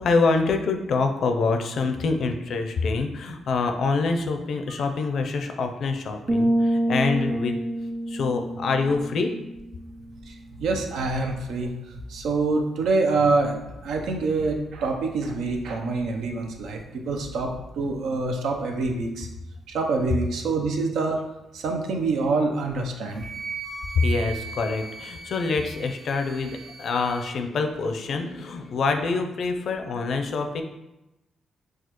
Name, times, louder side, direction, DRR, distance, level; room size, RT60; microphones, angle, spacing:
voice 1, 0.0-7.6 8.1-9.3 23.9-30.6, left 4 dB, 65° left, 5 dB, 0.5 m, -25 dB
sound 1, 6.3-10.0, right 1 dB, 25° right, 0.3 m, -27 dB
voice 2, 10.6-11.7 12.1-19.3 19.7-21.2 21.5-23.3, right 3 dB, 80° right, 3 dB, 0.6 m, -26 dB
Wind instrument woodwind instrument, 23.1-27.3, right 5 dB, 60° right, 1.4 m, -38 dB
6.3 x 2.3 x 2.9 m, 0.95 s
cardioid pair, 105°, 0 cm